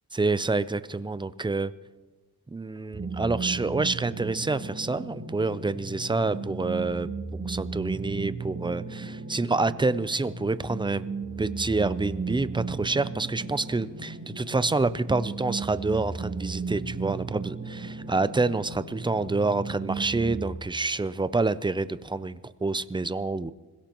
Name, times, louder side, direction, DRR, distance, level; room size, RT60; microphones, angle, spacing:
voice 1, 0.1-1.7 2.5-7.1 7.4-11.1 11.4-23.5, right 3 dB, 10° right, 14 dB, 0.5 m, -27 dB
sound 1, 2.9-20.6, right 4 dB, 35° right, 3.1 m, -35 dB
26.0 x 16.5 x 3.0 m, 1.3 s
wide cardioid pair, 100°, 40 cm